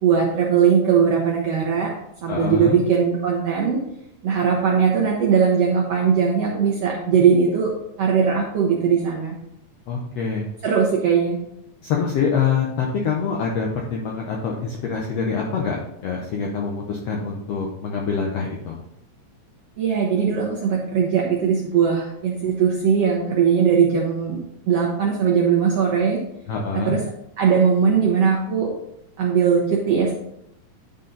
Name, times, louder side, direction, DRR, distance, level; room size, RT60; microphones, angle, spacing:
voice 1, 0.0-1.9 2.2-3.8 4.2-7.7 8.0-9.4 10.6-11.4 19.8-24.4 24.7-26.2 26.7-27.0 27.4-28.7 29.2-30.1, right 6 dB, 70° right, -2 dB, 1.5 m, -19 dB
voice 2, 2.3-2.8 9.9-10.4 11.8-18.8 26.5-27.0, left 5 dB, 90° left, 0 dB, 1.4 m, -25 dB
10.0 x 4.0 x 3.9 m, 0.79 s
omnidirectional pair, 4.0 m